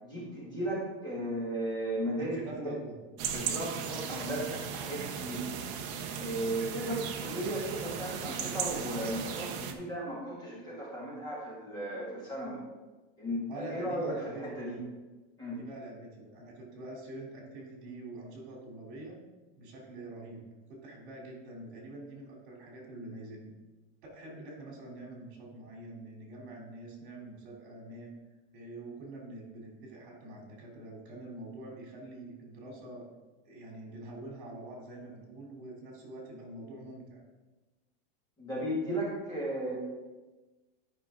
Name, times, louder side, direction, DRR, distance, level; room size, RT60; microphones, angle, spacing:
voice 1, 0.0-2.7 3.3-5.5 6.2-12.6 13.2-14.8 15.4-15.6 38.4-39.7, right 1 dB, 15° left, -7 dB, 2.2 m, -35 dB
voice 2, 2.2-2.9 13.5-14.7 15.5-19.2 19.6-20.4 20.7-23.5 24.1-28.1 28.5-33.1 33.4-37.2, right 2 dB, 55° right, -2 dB, 3.3 m, -45 dB
sound 1, 3.2-9.7, right 7 dB, 30° right, 0.6 m, -37 dB
12.5 x 5.9 x 3.8 m, 1.2 s
supercardioid pair, 175°, 32 cm